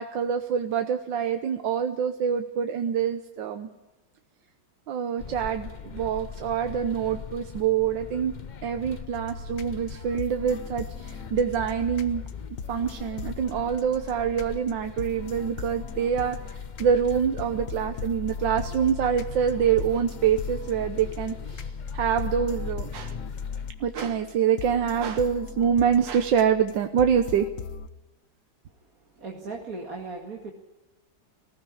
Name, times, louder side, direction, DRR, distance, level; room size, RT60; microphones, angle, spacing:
voice 1, 0.0-3.7 4.9-8.3 8.6-12.2 12.7-23.1 23.8-27.5, right 8 dB, 85° right, 7 dB, 1.7 m, -26 dB
sound 1, 5.2-23.7, left 5 dB, 75° left, 0.4 m, -38 dB
sound 2, 9.1-27.9, left 5 dB, 50° left, 1.2 m, -40 dB
voice 2, 29.1-30.5, right 3 dB, 50° right, 0 dB, 2.6 m, -37 dB
19.5 x 15.5 x 10.0 m, 1.1 s
omnidirectional pair, 2.0 m